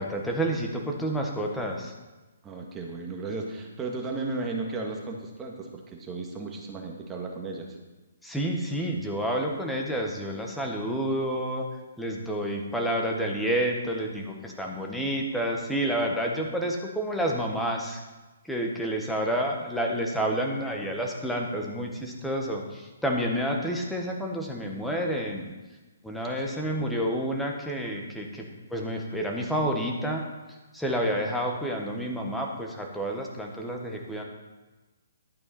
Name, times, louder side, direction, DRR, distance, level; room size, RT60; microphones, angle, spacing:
voice 1, 0.0-1.9 8.2-11.6 12.0-18.0 18.4-25.5 26.0-30.2 30.7-34.2, equal, ahead, 0 dB, 1.5 m, -29 dB
voice 2, 2.4-7.8 26.4-26.9, right 3 dB, 15° right, 1 dB, 1.7 m, -35 dB
11.5 x 8.7 x 4.4 m, 1.2 s
figure-of-eight pair, 130°, 0 cm